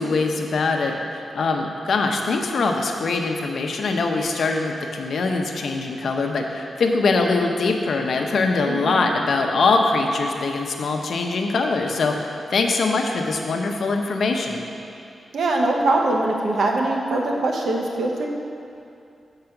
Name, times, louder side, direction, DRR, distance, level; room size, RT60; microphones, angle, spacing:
voice 1, 0.0-14.6, left 3 dB, 70° left, 3 dB, 0.7 m, -23 dB
voice 2, 8.7-9.1 15.3-18.3, right 2 dB, 75° right, 0 dB, 0.9 m, -22 dB
7.8 x 4.8 x 5.9 m, 2.6 s
wide cardioid pair, 105°, 0 cm